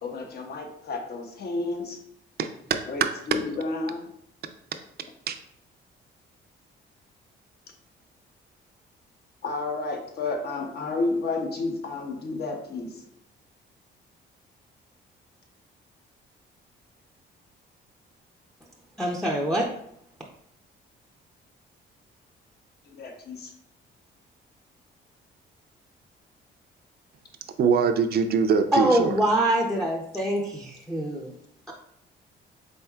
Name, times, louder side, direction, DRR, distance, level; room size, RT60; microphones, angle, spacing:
voice 1, 0.0-2.0 2.9-4.0 9.4-13.1 22.9-23.5, left 3 dB, 55° left, 0.8 m, -31 dB
voice 2, 2.4-3.4 5.3-5.4 27.6-29.1, right 6 dB, 55° right, 0.5 m, -23 dB
voice 3, 19.0-19.7 28.7-31.3, right 1 dB, ahead, 0.6 m, -24 dB
4.4 x 3.5 x 2.3 m
cardioid pair, 90°, 20 cm